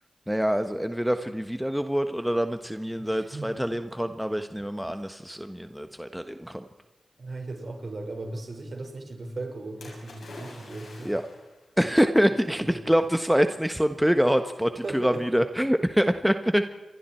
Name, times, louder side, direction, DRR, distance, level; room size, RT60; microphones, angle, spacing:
voice 1, 0.3-6.6 11.0-11.2 11.8-16.7, equal, 5° right, 8 dB, 1.3 m, -25 dB
voice 2, 3.0-3.7 7.2-11.2 11.8-12.1 12.5-12.8 14.8-15.3 16.0-16.1, right 2 dB, 55° right, 3 dB, 5.2 m, -37 dB
Splash splatter, 9.8-11.6 12.5-12.6, left 2 dB, 75° left, 7.9 m, -46 dB
28.5 x 23.5 x 4.5 m, 1.1 s
cardioid pair, 40°, 0 cm